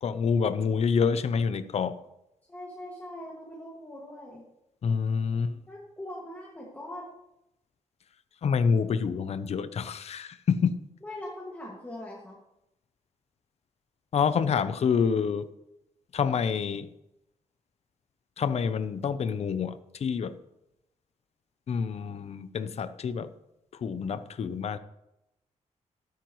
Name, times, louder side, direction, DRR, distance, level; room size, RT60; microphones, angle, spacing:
voice 1, 0.0-2.0 4.8-5.6 8.4-10.8 14.1-15.5 16.1-16.9 18.4-20.4 21.7-23.3 23.8-24.8, left 6 dB, 55° left, 12 dB, 0.7 m, -27 dB
voice 2, 2.5-4.4 5.7-7.1 11.0-12.4, left 1 dB, 10° left, -4 dB, 2.0 m, -41 dB
13.0 x 12.0 x 3.1 m, 0.86 s
wide cardioid pair, 145°, 13 cm